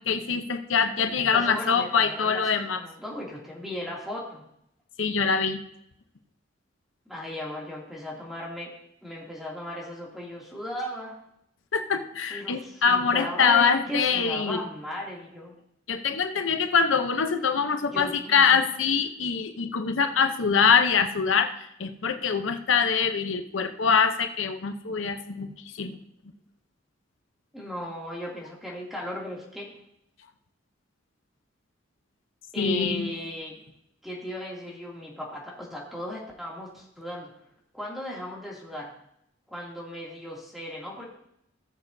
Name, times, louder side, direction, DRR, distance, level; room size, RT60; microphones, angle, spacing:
voice 1, 0.1-2.8 5.0-5.6 11.7-14.6 15.9-21.5 21.8-26.0 32.6-33.1, left 6 dB, 80° left, 7 dB, 0.7 m, -24 dB
voice 2, 1.1-4.5 7.1-8.7 9.0-11.2 12.3-15.5 17.9-18.6 27.5-29.7 32.5-33.6 34.0-37.3 37.7-38.9 39.5-41.1, equal, ahead, -4 dB, 2.5 m, -36 dB
18.0 x 7.2 x 2.7 m, 0.77 s
head